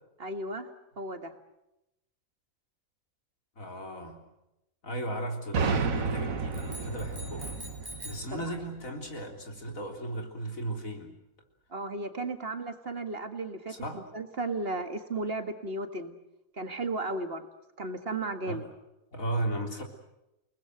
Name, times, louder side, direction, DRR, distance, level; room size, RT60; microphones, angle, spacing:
voice 1, 0.2-0.7 1.0-1.3 8.3-8.4 11.7-16.2 16.5-17.5 17.8-18.7, right 2 dB, 45° right, 7 dB, 1.9 m, -34 dB
voice 2, 3.6-4.2 4.8-7.6 8.0-11.2 13.7-14.1 18.5-18.6 19.1-19.8, right 1 dB, 75° left, 3 dB, 4.0 m, -36 dB
sound 1, 5.5-9.2, right 4 dB, 75° right, 1.8 m, -32 dB
sound 2, 6.5-8.3, left 1 dB, 15° right, 4.9 m, -45 dB
30.0 x 19.5 x 7.8 m, 0.90 s
omnidirectional pair, 1.4 m